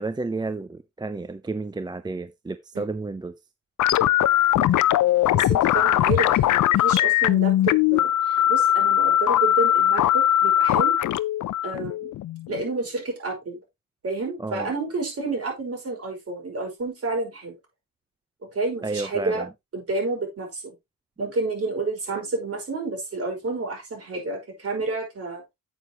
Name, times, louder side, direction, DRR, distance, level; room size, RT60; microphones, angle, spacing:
voice 1, 0.0-3.3 14.4-14.7 18.8-19.5, right 3 dB, 15° right, 0.5 m, -31 dB
sound 1, 3.8-12.7, left 12 dB, 65° left, 0.5 m, -20 dB
voice 2, 5.3-10.9 11.6-12.1 12.5-13.6 14.0-17.5 18.4-19.4 19.7-20.7 21.2-25.4, right 3 dB, 45° right, 5.6 m, -30 dB
9.0 x 8.3 x 3.0 m
cardioid pair, 125°, 33 cm